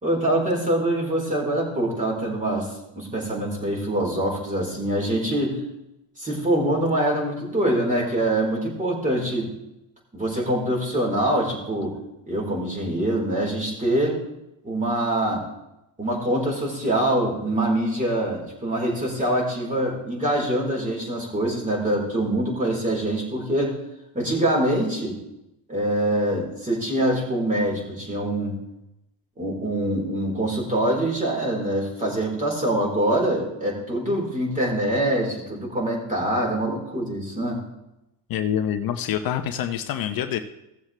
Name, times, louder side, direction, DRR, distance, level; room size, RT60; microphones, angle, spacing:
voice 1, 0.0-5.6 6.2-9.5 10.1-12.0 12.3-14.2 14.6-15.4 16.0-23.8 24.1-25.2 25.7-28.6 29.4-37.6, right 1 dB, 20° right, -2 dB, 4.1 m, -24 dB
voice 2, 38.3-40.4, left 9 dB, 55° left, 7 dB, 0.8 m, -26 dB
16.5 x 7.3 x 3.3 m, 0.89 s
supercardioid pair, 95°, 42 cm